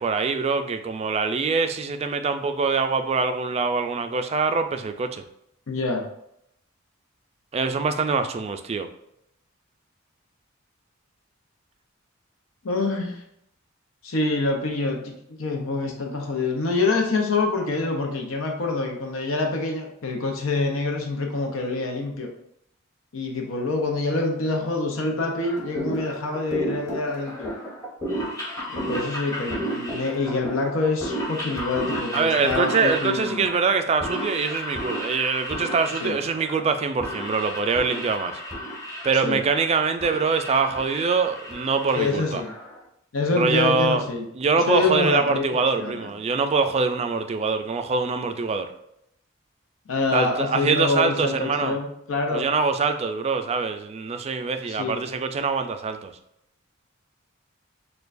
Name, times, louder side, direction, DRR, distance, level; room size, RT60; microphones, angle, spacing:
voice 1, 0.0-5.2 7.5-8.9 32.1-38.4 39.0-42.4 43.3-44.0 44.4-48.7 50.1-51.8 52.3-56.1, right 4 dB, 30° right, 7 dB, 0.3 m, -24 dB
voice 2, 5.7-6.1 12.6-13.2 14.0-15.1 15.4-22.3 23.1-27.5 28.7-33.4 36.0-36.2 39.2-39.4 41.9-42.5 43.1-44.2 44.5-46.1 49.9-52.5 54.7-55.0, left 3 dB, 75° left, 2 dB, 0.7 m, -26 dB
sound 1, 25.4-42.8, equal, 15° left, 1.0 m, -33 dB
6.6 x 2.2 x 2.5 m, 0.77 s
head